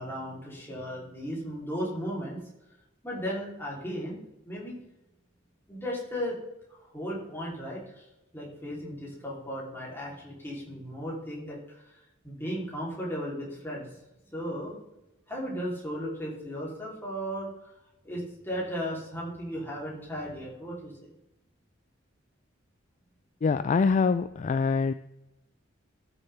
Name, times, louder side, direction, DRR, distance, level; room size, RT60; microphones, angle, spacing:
voice 1, 0.0-2.4 3.0-4.8 5.7-6.4 6.7-8.1 8.3-11.8 12.2-13.9 14.3-14.7 15.3-17.5 18.0-20.9, equal, 10° left, -5 dB, 3.3 m, -35 dB
voice 2, 23.4-24.9, left 5 dB, 40° left, 12 dB, 0.3 m, -24 dB
13.5 x 6.8 x 3.5 m, 0.93 s
head